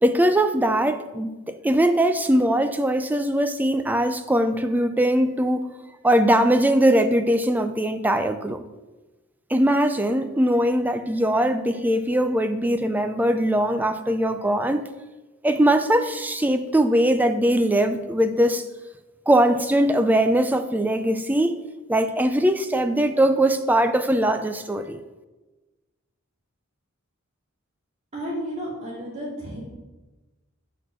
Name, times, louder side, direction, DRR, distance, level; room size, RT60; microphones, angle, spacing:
voice 1, 0.0-5.7 6.0-8.6 9.5-14.8 15.4-18.7 19.3-21.6 21.9-25.0, right 1 dB, 10° right, 0.4 m, -21 dB
voice 2, 28.1-29.6, equal, 30° right, 2.5 m, -32 dB
8.7 x 4.5 x 6.3 m
head